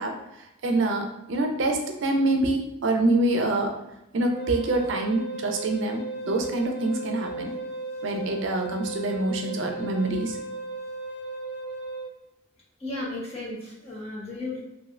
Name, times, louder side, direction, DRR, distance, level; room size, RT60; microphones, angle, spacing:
voice 1, 0.0-3.7 4.1-7.5 8.0-10.4, right 2 dB, 70° right, 3 dB, 0.5 m, -26 dB
Wind instrument woodwind instrument, 4.3-12.1, right 2 dB, 50° left, 0.4 m, -36 dB
voice 2, 12.8-14.6, left 2 dB, 30° left, -5 dB, 0.9 m, -34 dB
3.1 x 2.6 x 2.4 m, 0.90 s
head